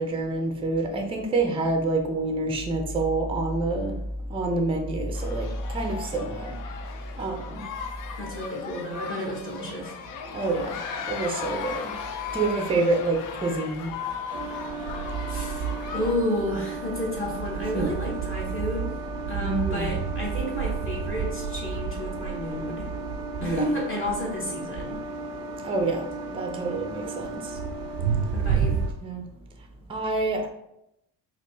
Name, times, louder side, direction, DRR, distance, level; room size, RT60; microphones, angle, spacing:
voice 1, 0.0-4.0 4.3-5.5 5.7-6.6 7.2-7.6 9.6-9.7 10.3-10.8 11.1-11.9 12.3-13.9 17.7-17.9 19.4-19.9 23.4-23.7 25.6-26.0 26.3-27.4 29.0-29.3 29.9-30.5, right 2 dB, 10° right, 3 dB, 0.6 m, -27 dB
sound 1, 5.1-16.2, left 7 dB, 40° left, 0.5 m, -37 dB
voice 2, 8.2-9.9 15.3-15.7 15.9-19.0 19.3-22.9 23.4-25.0 28.3-28.8, left 1 dB, 25° left, -3 dB, 1.1 m, -31 dB
sound 2, 14.3-28.9, right 5 dB, 65° right, 0.5 m, -31 dB
4.1 x 2.3 x 3.1 m, 0.82 s
hypercardioid pair, 60°, 50 cm